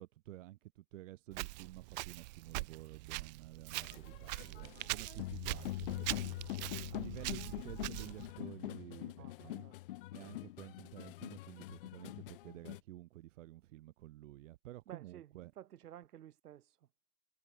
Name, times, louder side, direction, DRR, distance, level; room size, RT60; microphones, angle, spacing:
voice 1, 0.0-9.7 10.1-15.5, right 16 dB, 50° right, 2.3 m, -52 dB
Walk footsteps, 1.3-8.3, right 23 dB, 30° right, 0.7 m, -43 dB
sound 1, 3.7-12.8, left 17 dB, 35° left, 0.6 m, -44 dB
voice 2, 9.2-9.7 14.9-15.3 15.6-16.7, right 11 dB, 70° right, 4.1 m, -53 dB
hypercardioid pair, 150°, 48 cm